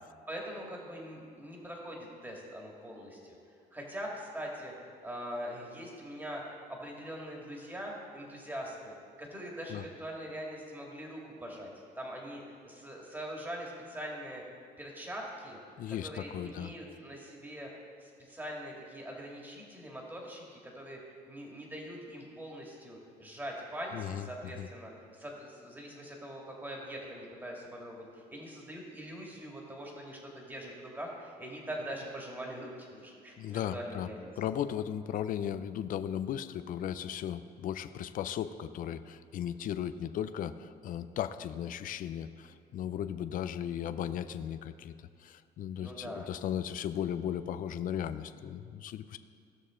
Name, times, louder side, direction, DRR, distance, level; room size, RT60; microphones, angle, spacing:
voice 1, 0.3-3.3 3.7-4.7 5.0-6.4 6.7-8.9 9.2-11.7 12.0-14.4 14.8-15.6 16.0-17.7 18.0-21.0 21.3-34.3 45.8-46.3, equal, 10° right, -2 dB, 2.1 m, -42 dB
voice 2, 15.8-16.7 23.9-24.7 33.4-34.1 34.4-44.9 45.2-49.2, left 10 dB, 55° left, 12 dB, 0.5 m, -36 dB
17.0 x 6.4 x 3.8 m, 2.2 s
cardioid pair, 110°, 17 cm